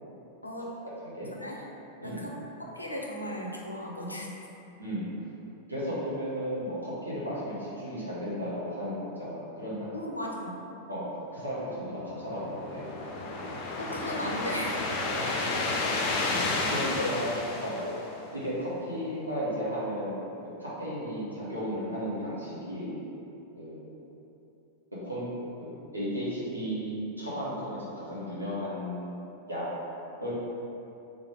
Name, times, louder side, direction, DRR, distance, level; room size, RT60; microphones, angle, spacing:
voice 1, 2.0-4.4 9.9-10.6 13.8-14.8 17.0-17.1 17.8-18.0, left 1 dB, 85° left, -1 dB, 0.5 m, -36 dB
voice 2, 4.8-5.1 5.7-9.9 10.9-11.0 11.3-12.9 15.1-15.4 16.3-16.4 16.7-17.3 17.6-17.7 18.3-23.0 23.5-23.9 25.0-25.2 25.6-29.6 30.2-30.3, equal, 85° right, -9 dB, 1.3 m, -34 dB
sound 1, 12.0-18.5, left 3 dB, 45° left, 0.6 m, -31 dB
3.7 x 3.5 x 3.5 m, 2.9 s
figure-of-eight pair, 90°, 0 cm